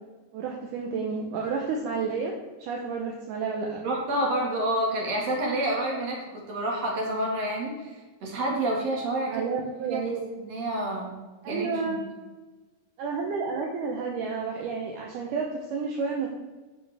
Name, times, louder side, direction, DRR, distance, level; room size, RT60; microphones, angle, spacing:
voice 1, 0.3-2.3 2.6-3.8 9.3-10.3 11.4-12.0 13.0-16.3, right 5 dB, 75° right, 0 dB, 2.0 m, -30 dB
voice 2, 3.8-9.4 9.9-10.0 10.4-11.1 11.5-12.0, right 1 dB, 50° right, -2 dB, 2.4 m, -28 dB
9.7 x 6.4 x 3.4 m, 1.2 s
omnidirectional pair, 4.4 m